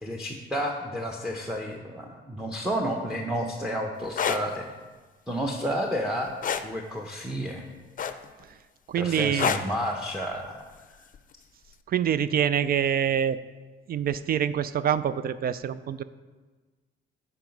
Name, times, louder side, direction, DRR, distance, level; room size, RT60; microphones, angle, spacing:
voice 1, 0.0-4.7 5.3-6.3 6.6-7.7 9.0-10.7, equal, 5° right, 1 dB, 0.8 m, -31 dB
sound 1, 4.0-4.4 6.4-6.7 8.0-8.4 9.4-9.7 11.1-11.3, left 7 dB, 45° left, 0.5 m, -26 dB
voice 2, 8.9-9.5 11.9-13.4 13.9-16.0, right 9 dB, 50° right, 15 dB, 0.4 m, -25 dB
9.0 x 4.8 x 5.2 m, 1.3 s
cardioid pair, 90°, 20 cm